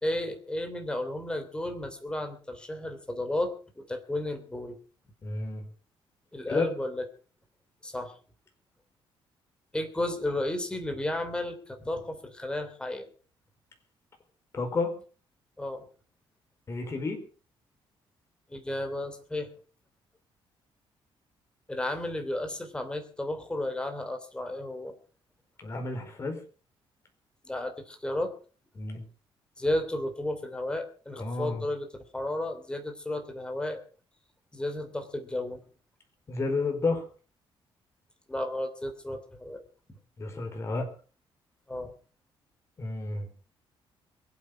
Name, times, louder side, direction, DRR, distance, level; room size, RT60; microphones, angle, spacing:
voice 1, 0.0-4.8 6.3-7.1 7.8-8.1 9.7-13.1 15.6-15.8 18.5-19.5 21.7-25.0 27.4-28.3 29.6-33.8 34.5-35.6 38.3-39.6 41.7-41.9, left 1 dB, 10° left, 7 dB, 3.0 m, -33 dB
voice 2, 5.2-5.6 6.5-6.7 14.5-14.9 16.7-17.2 25.6-26.4 28.8-29.0 31.1-31.6 36.3-37.0 40.2-40.9 42.8-43.3, left 3 dB, 30° left, 4 dB, 4.6 m, -30 dB
22.5 x 8.7 x 6.0 m, 0.39 s
cardioid pair, 150°, 10 cm